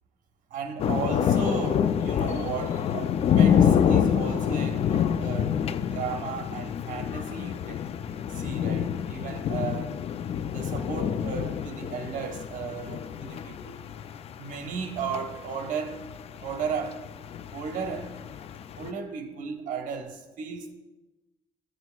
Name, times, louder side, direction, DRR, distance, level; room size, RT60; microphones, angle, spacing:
voice 1, 0.5-5.6 5.9-7.9 8.3-10.0 10.4-13.8 14.4-16.0 16.4-17.0 17.5-18.1 18.8-20.7, right 6 dB, 85° right, 1.0 m, -35 dB
sound 1, 0.8-18.9, left 8 dB, 50° left, 0.4 m, -27 dB
13.5 x 7.9 x 2.3 m
cardioid pair, 125°, 13 cm